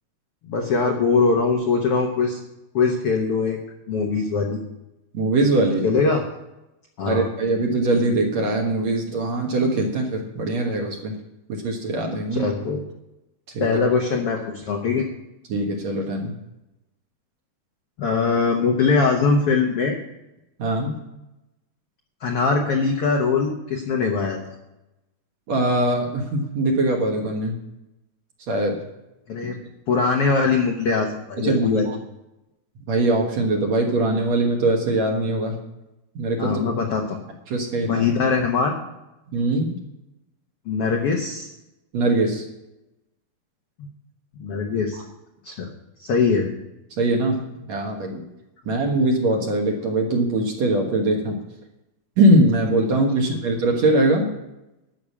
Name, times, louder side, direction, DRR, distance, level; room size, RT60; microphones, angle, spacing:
voice 1, 0.4-2.4 2.7-3.6 3.9-4.6 5.8-6.2 7.0-7.3 12.3-12.8 13.6-15.1 18.0-20.0 22.2-24.5 29.3-29.6 29.9-31.9 36.4-37.2 37.8-38.8 40.7-41.5 44.4-45.0 45.4-45.7 46.0-46.5, left 4 dB, 75° left, 2 dB, 1.3 m, -22 dB
voice 2, 5.1-5.9 7.1-11.1 11.5-12.5 13.5-13.8 15.5-16.3 20.6-20.9 25.5-27.6 28.5-28.8 31.4-31.9 32.9-35.6 36.2-36.6 37.5-38.1 39.3-39.8 41.9-42.4 47.0-47.4 47.7-48.2 48.7-51.4 52.2-54.3, right 2 dB, 55° right, 1 dB, 2.2 m, -21 dB
12.0 x 6.5 x 8.6 m, 0.94 s
omnidirectional pair, 4.3 m